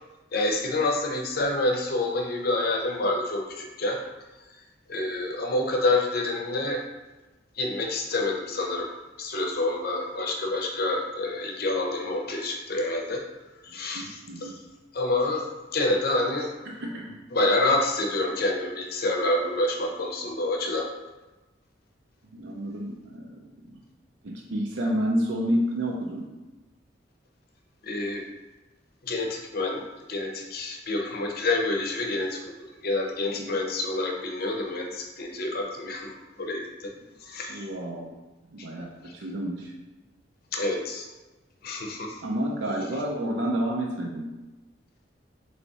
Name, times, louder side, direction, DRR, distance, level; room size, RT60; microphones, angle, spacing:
voice 1, 0.3-4.0 4.9-6.8 7.6-13.2 13.6-14.6 14.9-15.4 15.7-16.5 17.3-20.9 27.8-28.2 29.0-29.8 30.1-32.4 32.8-36.1 36.4-36.9 37.2-37.6 39.0-39.1 40.5-41.1 41.6-42.2, left 2 dB, 55° left, 1 dB, 0.6 m, -27 dB
voice 2, 13.7-14.5 16.6-17.2 22.3-23.8 24.2-26.3 33.3-33.6 37.5-38.2 38.5-39.7 42.2-44.3, equal, 75° right, -1 dB, 0.6 m, -30 dB
3.5 x 3.2 x 4.1 m, 1.1 s
head